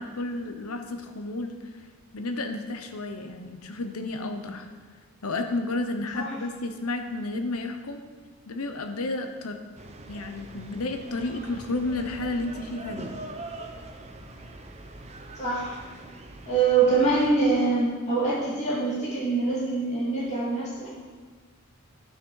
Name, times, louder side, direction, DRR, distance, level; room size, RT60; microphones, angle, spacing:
voice 1, 0.0-1.5 2.1-4.7 5.2-8.0 8.5-9.6 10.1-13.1, left 2 dB, 80° left, 6 dB, 0.9 m, -31 dB
sound 1, 9.7-17.6, right 2 dB, 30° right, 0.7 m, -43 dB
voice 2, 15.4-15.8 16.4-20.9, right 3 dB, 30° left, -8 dB, 2.3 m, -24 dB
11.5 x 5.9 x 4.7 m, 1.5 s
head